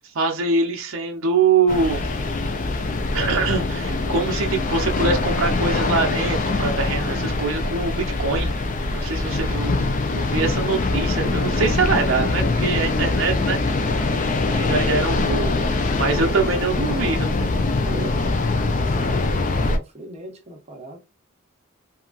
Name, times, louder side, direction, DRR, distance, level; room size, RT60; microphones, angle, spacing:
voice 1, 0.1-2.1 3.1-8.5 8.9-9.8 10.1-13.6 14.5-15.5 16.0-17.3, right 4 dB, 70° right, 0.6 m, -23 dB
sound 1, 1.7-19.8, left 3 dB, 40° left, 0.4 m, -23 dB
voice 2, 14.4-15.6 17.8-18.4 18.7-21.0, right 1 dB, 30° right, 0.8 m, -39 dB
2.8 x 2.4 x 2.4 m
head